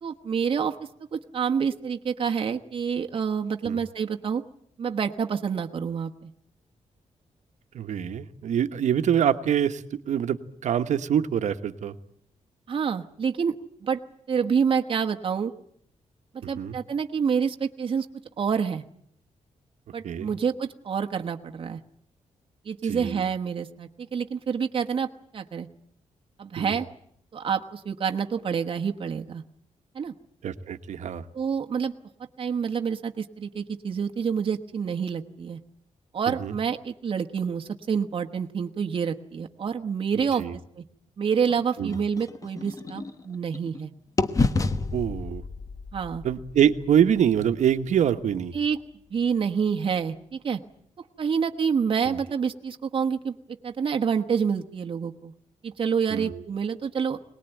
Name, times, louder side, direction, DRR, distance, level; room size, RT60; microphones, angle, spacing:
voice 1, 0.0-4.4 4.8-6.3 12.7-13.6 13.8-14.0 14.3-15.5 16.5-18.1 18.4-18.8 19.9-21.8 22.6-25.7 26.4-26.9 27.3-29.4 29.9-30.1 31.3-31.9 32.4-35.6 36.1-40.4 40.8-40.9 41.2-43.9 45.9-46.2 48.5-48.8 49.1-50.6 51.2-53.4 53.6-55.3 55.6-57.2, right 6 dB, 45° right, 4 dB, 1.2 m, -27 dB
voice 2, 7.7-10.4 10.6-11.9 16.4-16.8 20.0-20.3 22.8-23.2 26.6-26.7 30.4-31.2 36.3-36.6 40.4-40.6 41.8-42.0 44.9-45.4 46.2-48.5 52.0-52.2 56.1-56.4, right 9 dB, 75° right, 9 dB, 1.3 m, -25 dB
sound 1, 41.5-43.8 44.2-48.1, left 3 dB, 25° left, 1.0 m, -31 dB
22.5 x 20.0 x 9.1 m, 0.68 s
wide cardioid pair, 135°, 12 cm